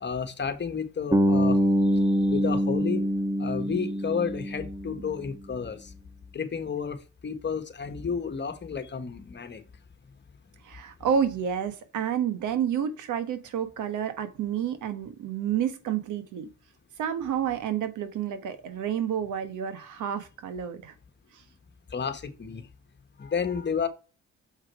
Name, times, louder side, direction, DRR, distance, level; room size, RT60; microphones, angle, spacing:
voice 1, 0.0-1.6 1.9-3.0 3.4-5.9 6.3-9.6 21.9-22.7 23.2-23.9, left 6 dB, 35° left, 1.4 m, -31 dB
Bass guitar, 1.1-5.2, equal, 15° right, 1.4 m, -25 dB
voice 2, 10.6-16.5 17.0-20.9 21.3-21.4, right 8 dB, 80° right, 1.3 m, -29 dB
7.3 x 4.9 x 4.7 m
cardioid pair, 90°, 30 cm